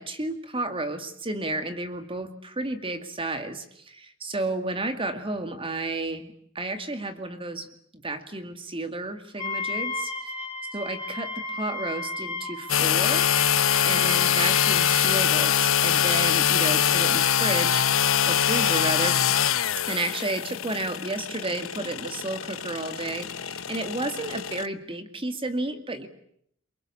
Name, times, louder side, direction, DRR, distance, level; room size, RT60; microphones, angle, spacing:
voice 1, 0.0-10.1 10.7-13.3 13.8-17.9 18.3-19.2 19.9-26.1, right 2 dB, 25° right, 9 dB, 2.2 m, -32 dB
Wind instrument woodwind instrument, 9.4-15.3, left 2 dB, 25° left, 5.3 m, -34 dB
sound 1, 12.7-24.7, left 9 dB, 70° left, 1.0 m, -24 dB
28.0 x 24.0 x 8.6 m, 0.69 s
head